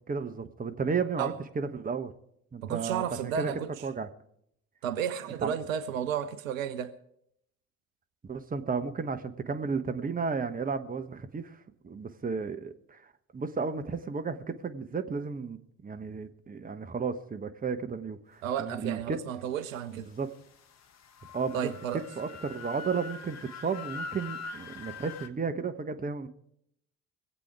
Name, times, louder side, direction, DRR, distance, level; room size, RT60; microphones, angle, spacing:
voice 1, 0.1-2.1 2.5-3.5 3.8-4.1 5.4-5.5 8.3-11.6 11.8-13.0 13.3-19.2 20.1-20.3 21.3-21.6 21.9-26.3, right 5 dB, 20° right, 1.2 m, -33 dB
voice 2, 2.6-3.7 4.8-6.9 18.4-20.1 21.5-22.0, right 8 dB, 75° right, 0.8 m, -32 dB
sound 1, 20.2-25.3, left 4 dB, 40° left, 1.1 m, -43 dB
23.5 x 8.4 x 4.8 m
figure-of-eight pair, 55°, 40 cm